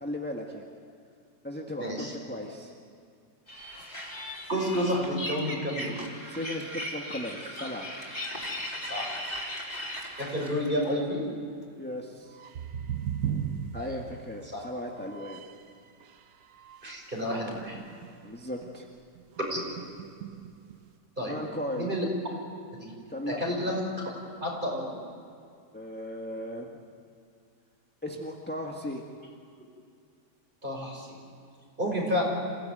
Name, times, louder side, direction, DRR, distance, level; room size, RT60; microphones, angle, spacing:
voice 1, 0.0-0.6 1.4-2.7 6.3-7.9 11.8-12.4 13.7-15.4 18.2-18.9 21.3-21.9 23.1-23.4 25.7-26.7 28.0-29.0, left 1 dB, 5° left, 0 dB, 1.5 m, -36 dB
voice 2, 1.8-2.1 4.5-6.0 8.9-9.2 10.2-11.2 13.7-13.9 14.5-14.6 16.8-17.8 19.5-19.6 21.2-21.4 21.7-22.1 22.7-22.9 23.3-24.1 24.4-24.9 30.6-31.2 31.8-32.2, equal, 30° right, -1 dB, 5.8 m, -30 dB
sound 1, 3.5-10.9, left 1 dB, 25° left, 4.2 m, -38 dB
sound 2, 12.3-15.7 16.0-18.3 18.6-18.8 19.2-20.9, right 8 dB, 65° right, 1.3 m, -38 dB
27.0 x 16.5 x 9.2 m, 2.3 s
omnidirectional pair, 1.8 m